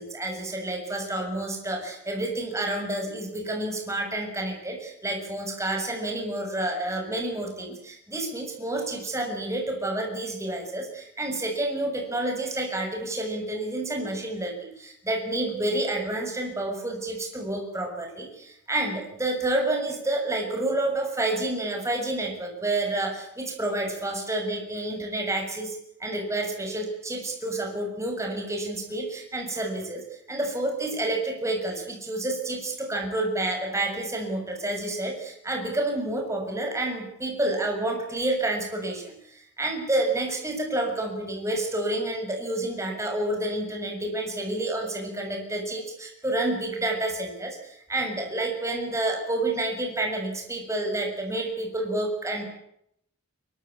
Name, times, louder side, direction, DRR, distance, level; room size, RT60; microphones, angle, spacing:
voice 1, 0.0-52.4, right 2 dB, 15° right, 2 dB, 6.8 m, -29 dB
24.0 x 23.0 x 8.4 m, 0.74 s
head